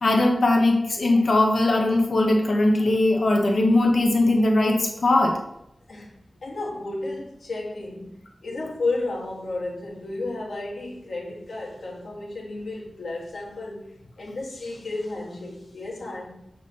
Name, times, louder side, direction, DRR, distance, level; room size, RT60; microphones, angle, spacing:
voice 1, 0.0-5.4, left 2 dB, 60° left, 1 dB, 1.1 m, -20 dB
voice 2, 6.4-13.9 14.2-16.3, left 2 dB, 80° left, -4 dB, 1.7 m, -32 dB
6.5 x 3.3 x 5.5 m, 0.79 s
wide cardioid pair, 110°, 0 cm